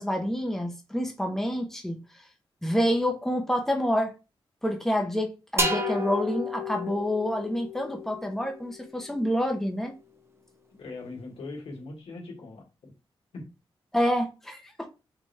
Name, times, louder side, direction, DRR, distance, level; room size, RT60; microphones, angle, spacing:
voice 1, 0.0-2.0 2.6-4.1 4.6-9.9 13.9-14.7, equal, 5° left, 1.0 m, -28 dB
sound 1, 5.6-9.2, left 1 dB, 25° right, 0.8 m, -32 dB
voice 2, 10.8-12.9 13.3-13.4, left 3 dB, 90° left, 1.7 m, -40 dB
5.4 x 2.6 x 3.4 m
cardioid pair, 70°, 10 cm